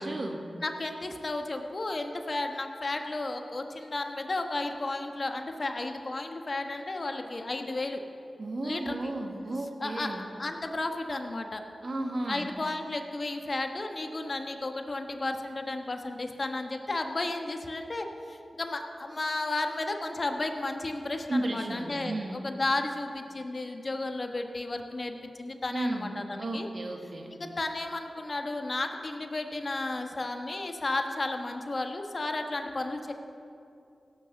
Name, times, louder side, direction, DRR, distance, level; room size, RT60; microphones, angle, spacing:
voice 1, 0.0-0.4 8.4-10.2 11.8-12.5 21.3-22.4 25.7-26.1 26.4-27.3, right 1 dB, 60° right, 3 dB, 1.8 m, -33 dB
voice 2, 0.6-8.0 8.6-9.0 9.8-10.1 10.4-11.6 12.2-26.7 27.3-33.1, left 2 dB, 50° left, 5 dB, 1.3 m, -33 dB
16.5 x 6.6 x 7.0 m, 2.6 s
cardioid pair, 40°, 0 cm